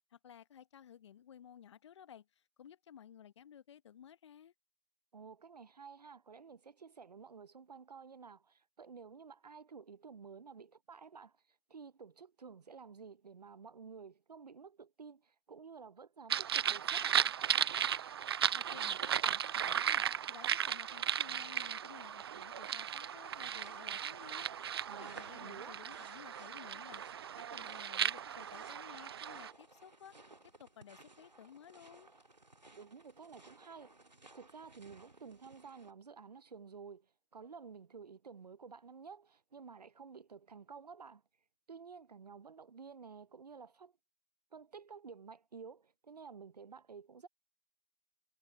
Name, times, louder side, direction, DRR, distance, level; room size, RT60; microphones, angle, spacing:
voice 1, 0.1-4.5 18.5-27.0 27.4-30.2 30.4-32.1, left 9 dB, 45° left, 1.2 m, -56 dB
voice 2, 5.1-11.4 11.7-17.3 24.9-25.8 32.7-34.0 34.3-41.2 41.7-43.9 44.5-47.3, right 5 dB, 70° right, 0.8 m, -52 dB
sound 1, 16.3-29.5, right 9 dB, 35° right, 0.4 m, -36 dB
sound 2, 23.2-35.9, right 2 dB, 85° right, 2.0 m, -60 dB
figure-of-eight pair, 135°, 21 cm